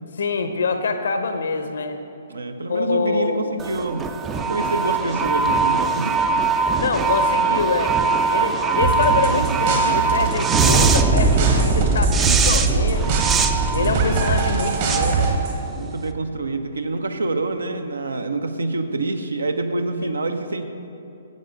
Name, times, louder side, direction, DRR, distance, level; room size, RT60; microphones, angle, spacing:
voice 1, 0.2-2.0 2.7-3.6 6.8-8.0 8.3-13.2 13.7-15.4 20.0-20.1, left 4 dB, 60° left, 8 dB, 0.8 m, -25 dB
voice 2, 2.3-4.1 4.3-6.2 13.7-14.1 15.8-20.6, right 2 dB, 70° right, 7 dB, 0.8 m, -26 dB
sound 1, 3.6-16.0, right 4 dB, 15° right, 0.5 m, -21 dB
sound 2, 8.8-15.6, right 4 dB, 45° right, 1.3 m, -24 dB
10.5 x 8.0 x 5.2 m, 2.8 s
figure-of-eight pair, 125°, 0 cm